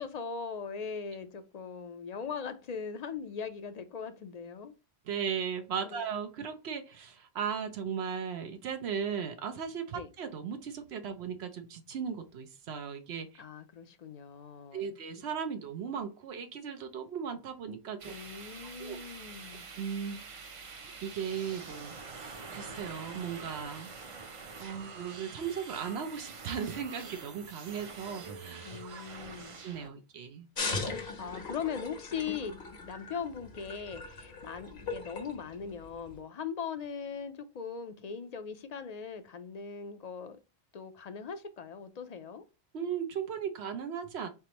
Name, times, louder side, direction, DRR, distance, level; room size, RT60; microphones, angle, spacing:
voice 1, 0.0-4.7 5.8-6.0 9.9-10.1 13.4-14.9 18.0-19.7 28.6-29.6 31.0-40.4 40.7-42.4, left 6 dB, 50° left, 0.5 m, -40 dB
voice 2, 5.1-13.4 14.7-18.1 18.8-19.0 19.8-20.2 21.0-23.9 24.6-29.0 29.6-30.5 42.7-44.3, right 7 dB, 85° right, 0.9 m, -37 dB
sound 1, 18.0-29.9, right 4 dB, 40° right, 0.5 m, -46 dB
sound 2, 30.6-36.2, left 3 dB, 75° left, 1.3 m, -39 dB
4.2 x 3.5 x 2.9 m
omnidirectional pair, 1.1 m